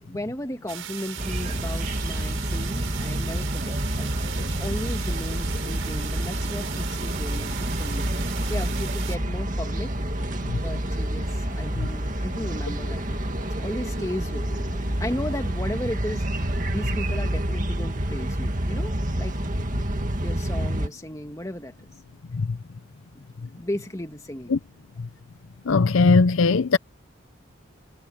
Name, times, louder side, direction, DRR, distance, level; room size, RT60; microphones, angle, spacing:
voice 1, 0.0-8.0 8.5-9.9 10.5-13.0 13.4-14.7 15.0-16.2 16.7-19.3 20.2-21.9 23.1-23.2 23.5-24.6, left 1 dB, 15° left, 2.1 m, -35 dB
sound 1, 0.7-9.2, right 10 dB, 75° right, 5.0 m, -38 dB
sound 2, 1.2-20.9, right 1 dB, 40° right, 2.1 m, -28 dB
sound 3, 9.5-15.5, left 1 dB, 40° left, 2.6 m, -47 dB
voice 2, 25.7-26.8, left 4 dB, 75° left, 0.6 m, -19 dB
head